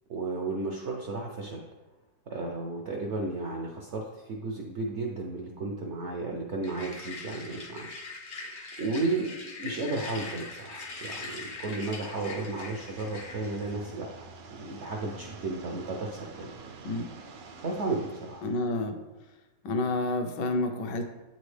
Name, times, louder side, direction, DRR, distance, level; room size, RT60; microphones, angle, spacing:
voice 1, 0.1-1.6 2.3-7.9 8.4-14.1 14.6-16.5 17.6-18.4, right 3 dB, 70° right, 1 dB, 0.6 m, -33 dB
sound 1, 6.6-13.8, left 3 dB, 50° left, 0.6 m, -42 dB
sound 2, 10.5-18.6, right 4 dB, 85° right, 1.4 m, -48 dB
voice 2, 18.4-18.9 19.6-21.0, left 2 dB, 80° left, 5 dB, 1.3 m, -29 dB
8.4 x 4.1 x 3.2 m, 1.1 s
omnidirectional pair, 1.9 m